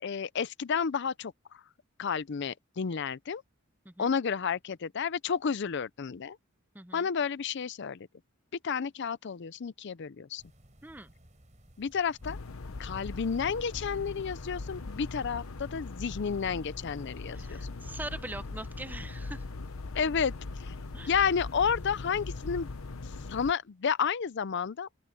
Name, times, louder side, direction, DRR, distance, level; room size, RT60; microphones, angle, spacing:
voice 1, 0.0-1.6 2.0-3.4 4.0-6.4 6.9-8.1 8.6-10.4 11.8-12.4 12.8-17.7 19.9-20.7 21.1-22.7 23.3-24.9, left 6 dB, 55° left, 0.5 m, -31 dB
voice 2, 6.7-7.1 10.8-11.1 17.3-19.4 20.9-21.1, right 2 dB, 10° right, 0.8 m, -42 dB
sound 1, 10.4-23.3, equal, 35° right, 4.1 m, -58 dB
sound 2, 12.2-23.5, left 3 dB, 85° left, 0.8 m, -40 dB
open air
head